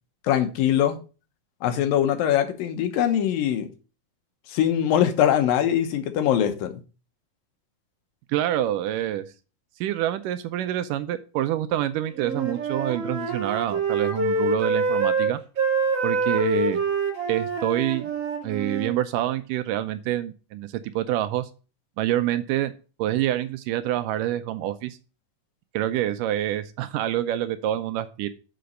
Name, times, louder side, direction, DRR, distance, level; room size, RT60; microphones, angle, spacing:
voice 1, 0.2-1.0 1.6-3.7 4.5-6.8, left 10 dB, 85° left, 2.8 m, -22 dB
voice 2, 8.3-9.3 9.8-15.4 16.0-16.8 17.3-18.1 18.4-21.5 22.0-22.7 23.0-25.0 25.7-28.3, right 13 dB, 80° right, 2.1 m, -26 dB
Wind instrument woodwind instrument, 12.1-19.0, right 3 dB, 35° right, 1.4 m, -26 dB
6.8 x 5.1 x 6.4 m
omnidirectional pair, 4.0 m